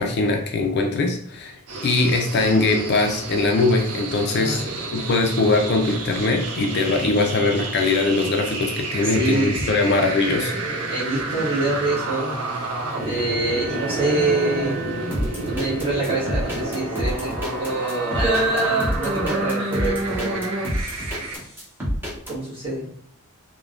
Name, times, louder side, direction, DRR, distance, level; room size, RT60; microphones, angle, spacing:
voice 1, 0.0-4.6 4.9-10.5, left 3 dB, 50° left, 3 dB, 0.4 m, -21 dB
sound 1, 1.7-21.4, right 2 dB, 75° right, 0.5 m, -31 dB
voice 2, 4.3-4.8 9.0-9.7 10.9-12.4 13.0-14.8 15.4-20.4 22.3-22.9, right 2 dB, 25° right, -8 dB, 1.3 m, -26 dB
sound 2, 10.0-20.7, right 2 dB, 55° right, 1.0 m, -30 dB
sound 3, 15.1-22.3, equal, 10° right, 0.6 m, -28 dB
3.3 x 2.1 x 2.4 m, 0.64 s
head